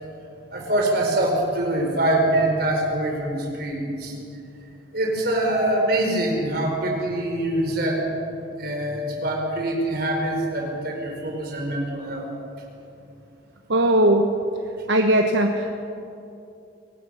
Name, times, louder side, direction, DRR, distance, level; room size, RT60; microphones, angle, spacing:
voice 1, 0.5-4.1 4.9-8.0 8.6-12.3, right 1 dB, 55° right, 1 dB, 4.6 m, -24 dB
voice 2, 13.7-14.3 14.9-15.8, right 1 dB, 75° right, 4 dB, 1.2 m, -19 dB
24.0 x 18.5 x 6.5 m, 2.7 s
head